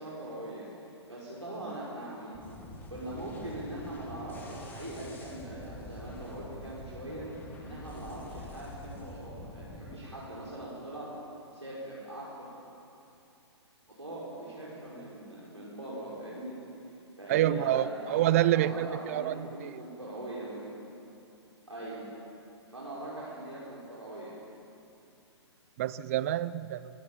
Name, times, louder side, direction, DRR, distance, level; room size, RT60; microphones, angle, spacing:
voice 1, 0.0-2.3 2.9-7.3 7.6-11.1 11.5-12.5 13.9-16.6 17.2-20.7 21.7-22.0 22.7-24.4, right 1 dB, 85° right, -7 dB, 5.5 m, -41 dB
sound 1, 2.3-10.0, left 1 dB, 15° left, 2.6 m, -46 dB
voice 2, 17.3-19.8 25.8-26.8, right 13 dB, 30° right, 17 dB, 0.4 m, -27 dB
24.0 x 18.0 x 7.2 m, 2.9 s
figure-of-eight pair, 120°, 15 cm